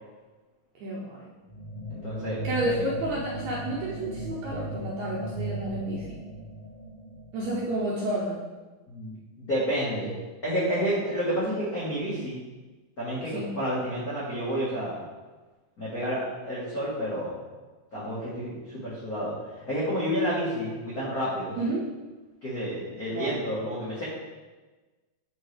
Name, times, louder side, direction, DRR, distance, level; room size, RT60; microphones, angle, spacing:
voice 1, 0.8-1.1 2.4-6.2 7.3-8.4 13.3-13.5 21.6-21.8 23.1-23.3, right 1 dB, 75° right, -5 dB, 1.7 m, -30 dB
sound 1, 1.5-8.2, right 1 dB, 40° left, 1.2 m, -37 dB
voice 2, 1.9-2.7 8.9-10.2 10.4-12.4 13.0-15.0 15.8-17.4 17.9-21.6 22.4-24.0, equal, 85° left, -9 dB, 0.8 m, -30 dB
8.9 x 4.4 x 3.3 m, 1.2 s
omnidirectional pair, 4.3 m